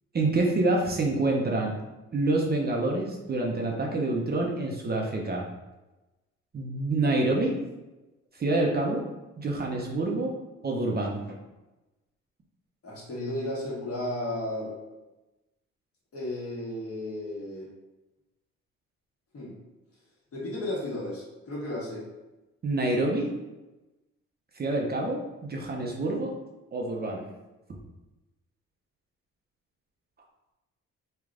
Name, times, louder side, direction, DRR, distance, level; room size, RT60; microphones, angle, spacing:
voice 1, 0.1-1.8 2.1-5.5 6.5-7.5 8.3-9.0 9.4-10.3 10.6-11.4 22.6-23.3 24.6-26.3 26.7-27.2, right 2 dB, 30° right, 0 dB, 0.6 m, -27 dB
voice 2, 12.8-14.8 16.1-17.7 19.3-19.5 20.3-22.0, left 1 dB, 50° left, -4 dB, 1.4 m, -34 dB
3.3 x 2.4 x 3.6 m, 1.0 s
cardioid pair, 90°, 30 cm